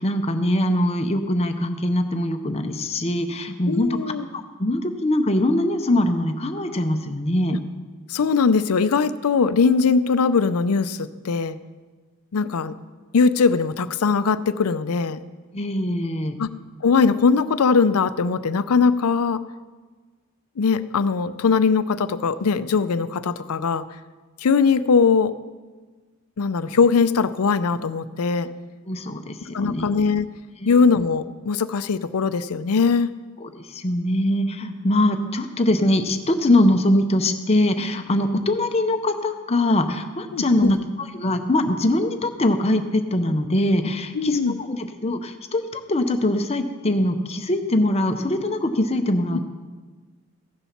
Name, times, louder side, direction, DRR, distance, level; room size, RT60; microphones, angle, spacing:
voice 1, 0.0-3.9 4.3-7.6 15.5-16.4 28.9-29.9 30.6-30.9 33.4-49.4, left 1 dB, 30° left, 7 dB, 0.7 m, -22 dB
voice 2, 3.7-4.2 8.1-11.6 12.3-12.7 13.1-15.2 16.4-16.5 16.8-19.4 20.6-23.8 24.4-25.3 26.4-28.5 29.5-30.3 30.6-33.1 40.3-40.8 44.1-44.6 49.3-49.4, left 5 dB, 85° left, 14 dB, 0.5 m, -20 dB
15.0 x 7.0 x 5.9 m, 1.4 s
head